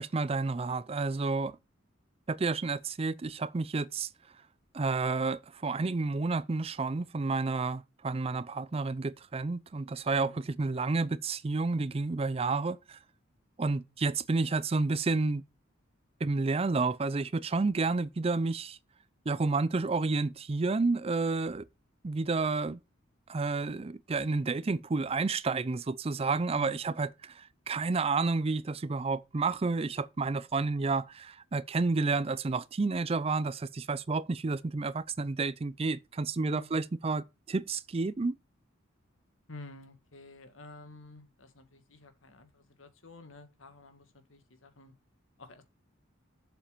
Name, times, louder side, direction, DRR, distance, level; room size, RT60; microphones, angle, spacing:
voice 1, 0.0-1.6 2.3-4.1 4.7-13.0 13.6-15.4 16.2-18.8 19.3-21.6 22.0-22.8 23.3-38.4, right 3 dB, 30° right, 0.4 m, -30 dB
voice 2, 26.5-26.9 36.4-36.8 39.5-44.9 45.4-45.6, left 2 dB, 85° left, 1.9 m, -51 dB
7.4 x 7.3 x 5.1 m
head